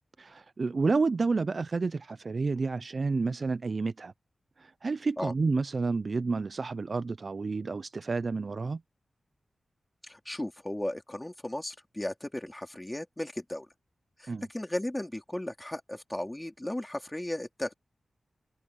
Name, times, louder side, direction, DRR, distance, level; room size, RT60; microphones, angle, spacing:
voice 1, 0.2-4.1 4.6-8.8 14.3-14.5, right 4 dB, 50° right, 0.4 m, -30 dB
voice 2, 10.0-13.7 14.2-17.7, left 1 dB, 15° left, 3.9 m, -35 dB
wide cardioid pair, 100°, 0 cm